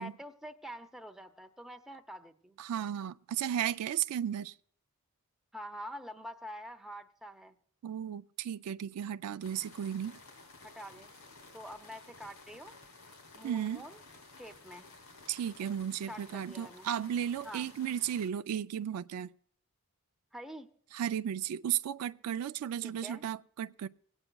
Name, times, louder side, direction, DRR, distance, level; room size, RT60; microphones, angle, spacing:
voice 1, 0.0-2.6 5.5-7.6 10.6-11.1 11.5-12.7 13.3-14.0 14.3-14.9 16.1-16.9 17.4-17.7 20.3-20.7 22.8-23.2, equal, ahead, 0.6 m, -46 dB
voice 2, 2.6-4.5 7.8-10.2 13.4-13.8 15.3-19.3 20.9-23.9, right 9 dB, 80° right, 0.3 m, -34 dB
sound 1, 9.4-18.3, left 3 dB, 75° left, 2.4 m, -54 dB
25.0 x 8.9 x 2.2 m
head